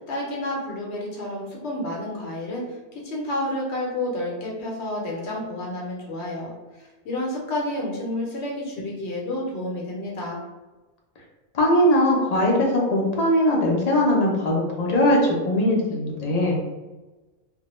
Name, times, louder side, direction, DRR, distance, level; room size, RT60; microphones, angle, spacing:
voice 1, 0.0-6.5 6.8-10.4, left 1 dB, 80° left, -2 dB, 0.9 m, -30 dB
voice 2, 11.5-16.6, left 1 dB, 50° left, -2 dB, 0.5 m, -20 dB
2.1 x 2.1 x 2.9 m, 1.2 s
omnidirectional pair, 1.2 m